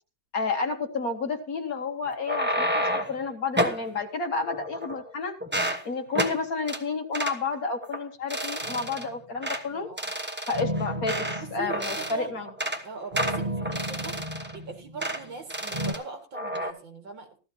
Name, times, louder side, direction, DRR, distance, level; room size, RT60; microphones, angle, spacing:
voice 1, 0.3-5.4 5.9-9.9 10.5-12.5, left 4 dB, 50° left, 5 dB, 1.7 m, -31 dB
sound 1, 2.1-3.2 3.6-3.8 4.5-5.1 5.4-5.8 6.2-6.4 6.7-6.8 7.1-7.4 7.8-8.0 8.3-9.1 9.4-9.6 10.0-11.4 11.7-12.2 12.5-12.8 13.2-14.6 15.0-15.2 15.5-16.0 16.3-16.7, equal, 5° right, 0.9 m, -30 dB
sound 2, 8.6-9.2 10.5-12.4 13.1-15.4 15.7-15.9, right 1 dB, 40° right, 0.5 m, -34 dB
voice 2, 9.7-10.1 11.3-12.4 12.8-17.4, right 4 dB, 75° right, 4 dB, 2.9 m, -41 dB
15.0 x 13.5 x 2.9 m, 0.32 s
omnidirectional pair, 2.1 m